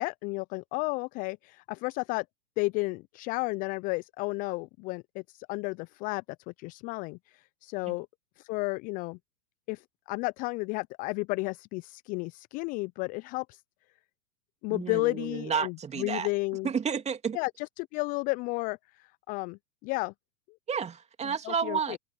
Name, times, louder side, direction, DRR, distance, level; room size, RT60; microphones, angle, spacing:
voice 1, 0.0-2.2 2.6-8.1 8.4-9.2 9.7-13.6 14.6-16.7 17.3-20.1 21.2-22.0, left 26 dB, 25° left, 0.4 m, -33 dB
voice 2, 14.7-16.3 16.6-17.4 20.7-22.0, right 6 dB, 20° right, 3.0 m, -31 dB
hypercardioid pair, 105°, 34 cm